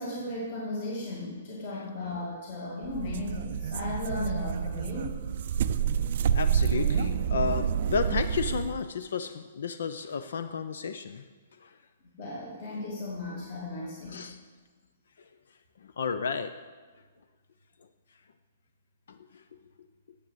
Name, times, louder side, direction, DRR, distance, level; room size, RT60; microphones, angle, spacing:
voice 1, 0.0-5.3 12.2-14.3, left 2 dB, 40° left, -4 dB, 2.1 m, -36 dB
sound 1, 2.8-8.8, right 8 dB, 45° right, 0.4 m, -28 dB
voice 2, 6.3-11.2 11.6-11.8 14.1-14.4 15.8-16.5 19.1-19.4, left 5 dB, 70° left, 10 dB, 0.6 m, -32 dB
9.8 x 7.5 x 7.9 m, 1.4 s
hypercardioid pair, 170°, 0 cm